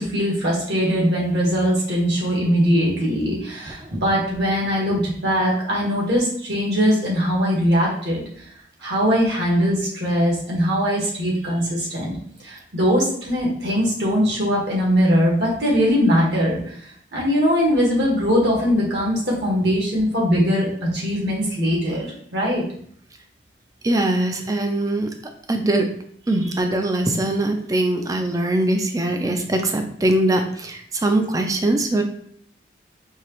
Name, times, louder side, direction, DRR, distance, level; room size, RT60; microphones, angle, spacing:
voice 1, 0.0-8.2 8.8-12.1 12.4-22.6, equal, 65° right, -3 dB, 1.5 m, -21 dB
voice 2, 23.8-25.1 25.5-25.9 26.3-32.0, right 1 dB, 20° right, 5 dB, 0.4 m, -21 dB
4.6 x 2.9 x 3.0 m, 0.63 s
head